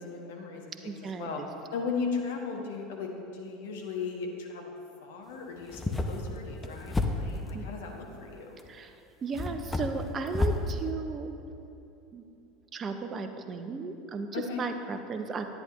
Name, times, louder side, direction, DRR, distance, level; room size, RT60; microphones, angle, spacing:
voice 1, 0.0-1.4 1.7-4.7 5.0-8.6 14.3-14.6, left 5 dB, 65° left, 1 dB, 1.2 m, -37 dB
voice 2, 0.8-1.5 7.5-7.7 8.7-8.9 9.2-11.3 12.1-12.2 12.7-15.5, right 4 dB, 30° right, 7 dB, 0.7 m, -35 dB
sound 1, 5.6-7.6 8.6-8.7 9.3-10.7, left 3 dB, 15° left, 0.7 m, -31 dB
10.5 x 9.4 x 3.0 m, 2.8 s
figure-of-eight pair, 75°, 0 cm